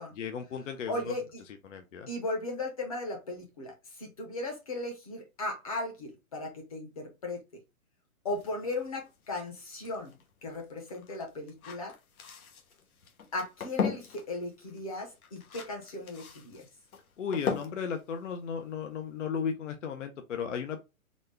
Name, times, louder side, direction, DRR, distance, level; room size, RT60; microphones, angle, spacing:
voice 1, 0.2-1.1 1.7-2.1 17.2-20.8, left 6 dB, 60° left, 0.7 m, -35 dB
voice 2, 0.9-1.4 2.1-7.4 8.2-10.1 10.4-11.9 13.3-16.6, left 2 dB, 25° left, 0.9 m, -37 dB
sound 1, 8.3-19.2, left 6 dB, 75° left, 1.1 m, -40 dB
4.1 x 2.2 x 3.3 m
hypercardioid pair, 175°, 43 cm